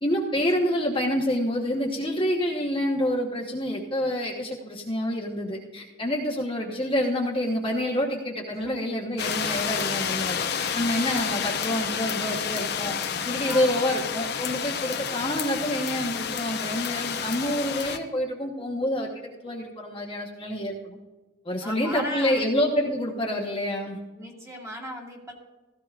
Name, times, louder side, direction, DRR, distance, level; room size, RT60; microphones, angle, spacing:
voice 1, 0.0-21.0 21.4-24.0, equal, 25° left, -1 dB, 1.1 m, -27 dB
voice 2, 8.5-9.0 13.4-13.8 21.6-22.4 24.2-25.3, left 1 dB, 15° right, -1 dB, 2.1 m, -37 dB
sound 1, 9.2-18.0, left 7 dB, 55° left, 0.8 m, -30 dB
16.5 x 14.0 x 2.5 m, 1.2 s
head